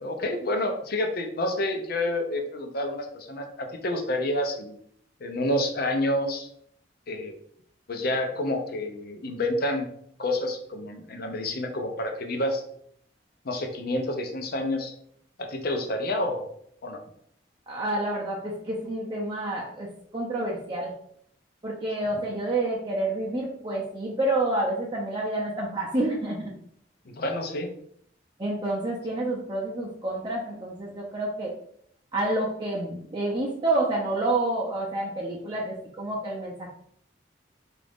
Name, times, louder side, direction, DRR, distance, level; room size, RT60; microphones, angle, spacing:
voice 1, 0.0-4.8 5.2-6.5 7.1-7.3 7.9-9.9 10.2-12.6 13.4-14.9 15.4-16.5 16.8-17.0 27.1-27.7, left 1 dB, 55° left, 5 dB, 0.6 m, -28 dB
voice 2, 17.7-19.9 20.1-20.9 21.6-26.5 28.4-31.5 32.1-36.7, right 2 dB, 25° right, -3 dB, 0.5 m, -28 dB
3.9 x 2.5 x 3.5 m, 0.66 s
head